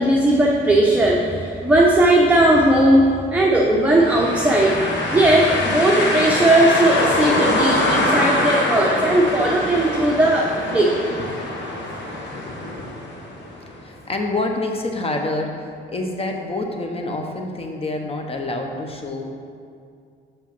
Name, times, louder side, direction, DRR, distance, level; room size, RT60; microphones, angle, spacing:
voice 1, 0.0-10.9, right 1 dB, 5° right, -3 dB, 0.8 m, -17 dB
sound 1, 3.9-13.7, left 2 dB, 65° left, 1.2 m, -24 dB
voice 2, 12.2-12.9 13.8-19.3, left 2 dB, 30° left, 3 dB, 1.0 m, -27 dB
6.1 x 5.7 x 5.9 m, 2.3 s
cardioid pair, 90°, 20 cm